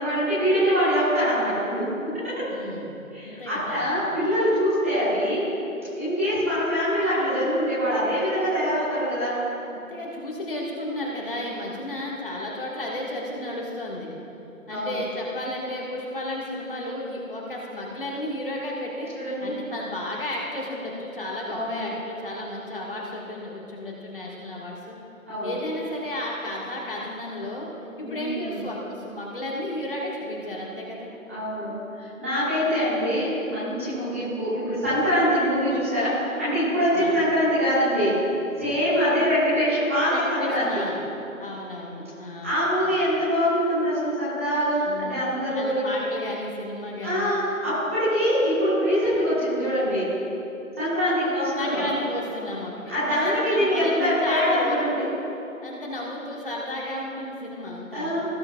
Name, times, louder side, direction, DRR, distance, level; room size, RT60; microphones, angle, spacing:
voice 1, 0.0-1.9 2.2-2.5 3.1-5.5 5.9-9.4 14.7-15.0 19.1-19.5 21.5-21.9 25.3-25.5 28.0-28.6 31.3-31.7 32.0-38.2 38.6-40.8 42.4-45.8 47.0-50.1 50.7-51.8 52.9-55.0 57.9-58.3, equal, 10° right, -13 dB, 1.3 m, -24 dB
voice 2, 2.5-2.9 3.2-3.9 9.7-14.1 14.7-19.1 19.4-25.0 25.4-27.7 28.0-28.8 29.0-31.1 36.9-37.1 40.1-41.0 41.4-42.6 44.9-45.2 45.5-47.3 51.6-55.1 55.6-58.2, left 1 dB, 40° left, -3 dB, 1.8 m, -33 dB
18.0 x 9.6 x 2.4 m, 2.9 s
figure-of-eight pair, 165°, 42 cm